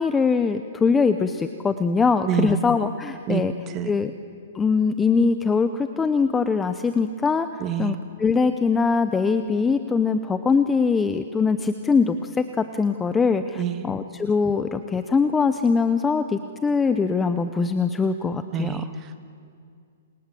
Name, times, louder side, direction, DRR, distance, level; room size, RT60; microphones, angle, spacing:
voice 1, 0.0-3.5 3.8-4.1 4.5-7.5 7.8-18.8, left 5 dB, 10° left, 9 dB, 0.7 m, -22 dB
voice 2, 2.3-2.6 3.3-4.0 7.6-7.9 13.5-13.9 18.5-19.1, right 9 dB, 20° right, 9 dB, 1.5 m, -27 dB
28.0 x 27.5 x 7.7 m, 2.3 s
hypercardioid pair, 165°, 0 cm